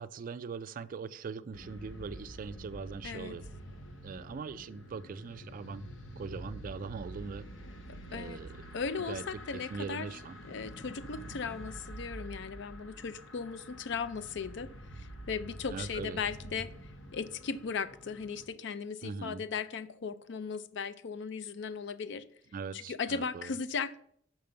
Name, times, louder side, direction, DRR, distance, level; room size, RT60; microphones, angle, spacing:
voice 1, 0.0-3.5 4.0-5.8 6.2-7.5 8.1-8.5 9.1-9.2 9.5-10.4 15.7-16.2 19.0-19.4 22.5-23.5, right 5 dB, 45° right, 0.3 m, -41 dB
sound 1, 1.5-18.5, equal, 90° left, 1.0 m, -47 dB
voice 2, 3.0-3.4 7.9-8.4 8.7-10.1 10.4-16.7 17.1-22.3 22.7-24.0, left 5 dB, 65° left, 0.5 m, -37 dB
6.0 x 5.2 x 6.7 m
head